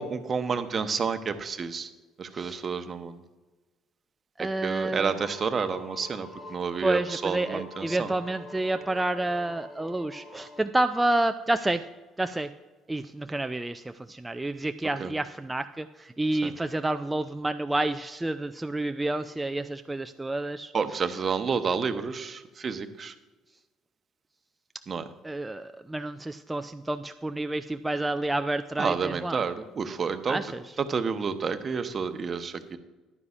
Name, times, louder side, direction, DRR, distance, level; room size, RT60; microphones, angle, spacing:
voice 1, 0.0-1.9 2.2-3.2 4.4-8.1 15.0-15.1 16.4-16.5 20.7-23.1 24.9-25.1 28.8-30.4 30.8-32.8, right 5 dB, 40° right, 10 dB, 0.9 m, -30 dB
voice 2, 4.4-5.1 6.8-11.8 12.2-12.5 12.9-20.7 25.2-29.4 30.3-30.6, right 2 dB, 15° right, 8 dB, 0.4 m, -29 dB
sound 1, 5.1-10.6, left 2 dB, 40° left, 3.1 m, -45 dB
14.5 x 11.0 x 2.5 m, 1.2 s
hypercardioid pair, 50°, 0 cm